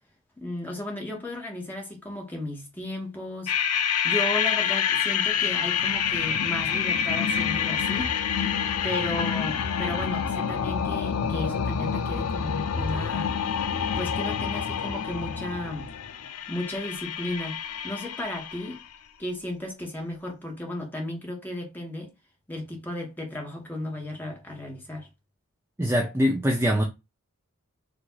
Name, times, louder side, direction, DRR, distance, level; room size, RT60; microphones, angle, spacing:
voice 1, 0.4-3.5 4.0-8.2 8.8-13.4 14.0-15.9 16.5-17.6 17.8-18.8 19.2-22.1 22.5-25.1, left 1 dB, 10° left, 1.3 m, -34 dB
sound 1, 3.5-18.8, left 7 dB, 90° left, 0.6 m, -27 dB
voice 2, 25.8-26.8, equal, 10° right, 0.6 m, -23 dB
4.8 x 2.6 x 3.9 m
head